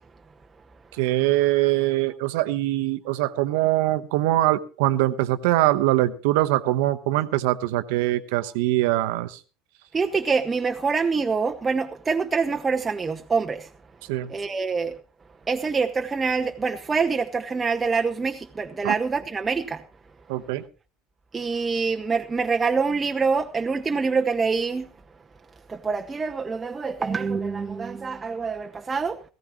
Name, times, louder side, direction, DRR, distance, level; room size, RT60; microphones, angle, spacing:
voice 1, 0.9-9.4 14.1-14.3 18.8-18.9 20.3-20.6, right 16 dB, 70° right, 1.0 m, -23 dB
voice 2, 9.9-13.7 14.3-15.0 15.5-19.8 21.3-24.9 25.7-29.2, right 5 dB, 25° right, 1.0 m, -25 dB
18.0 x 15.5 x 3.1 m
hypercardioid pair, 70°, 0 cm